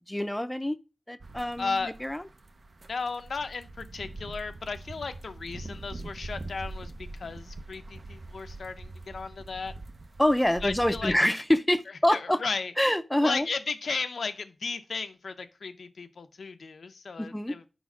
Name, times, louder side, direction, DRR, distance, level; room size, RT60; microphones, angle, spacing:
voice 1, 0.1-0.8 1.1-2.2 10.2-12.4 12.8-13.5 17.2-17.5, left 1 dB, 10° left, 0.5 m, -26 dB
sound 1, 1.2-11.2, right 2 dB, 55° right, 0.6 m, -43 dB
voice 2, 1.6-1.9 2.9-9.7 10.6-11.1 12.1-12.7 13.2-17.6, left 4 dB, 85° left, 0.6 m, -35 dB
5.1 x 4.1 x 5.9 m
wide cardioid pair, 70°, 0 cm